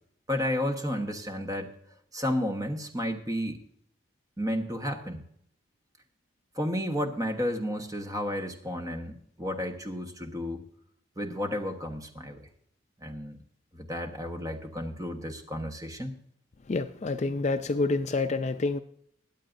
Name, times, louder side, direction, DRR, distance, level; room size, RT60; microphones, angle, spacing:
voice 1, 0.3-1.7 2.1-3.6 4.4-5.2 6.5-10.6 11.2-12.4 13.0-13.4 13.7-16.2, equal, 15° right, 1.2 m, -32 dB
voice 2, 16.7-18.8, left 3 dB, 35° left, 0.4 m, -28 dB
22.0 x 8.5 x 2.6 m
head